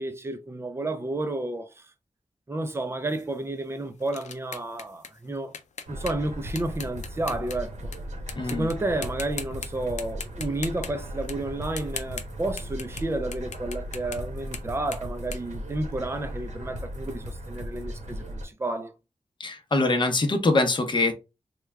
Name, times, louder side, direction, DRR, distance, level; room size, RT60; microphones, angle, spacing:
voice 1, 0.0-1.7 2.5-5.5 5.9-7.7 8.4-18.9, right 2 dB, 20° right, 0.5 m, -31 dB
sound 1, 3.1-8.0 8.3-8.7 9.0-9.7 10.0-13.0 13.3-16.3, left 6 dB, 85° left, 0.5 m, -40 dB
sound 2, 5.9-18.4, equal, 85° right, 1.0 m, -37 dB
voice 2, 8.4-8.7 19.4-21.1, left 2 dB, 40° left, 0.7 m, -23 dB
3.2 x 2.3 x 3.3 m
wide cardioid pair, 130°, 12 cm